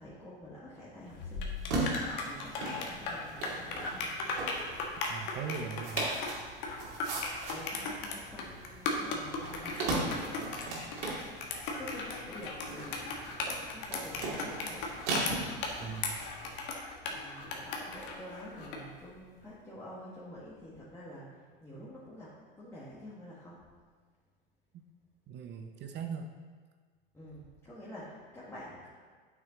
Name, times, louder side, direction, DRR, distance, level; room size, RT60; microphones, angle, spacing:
voice 1, 0.0-4.4 7.5-10.6 11.8-13.1 13.7-15.0 17.0-23.6 27.1-28.9, equal, 10° left, -9 dB, 1.8 m, -48 dB
sound 1, 1.1-18.9, left 4 dB, 60° left, 1.4 m, -37 dB
sound 2, 1.6-16.6, right 2 dB, 75° right, 2.5 m, -39 dB
voice 2, 5.0-6.1 15.8-16.2 24.7-24.8 25.3-26.3, right 6 dB, 35° right, 5 dB, 0.7 m, -40 dB
8.6 x 6.2 x 3.9 m, 1.6 s
hypercardioid pair, 95°, 29 cm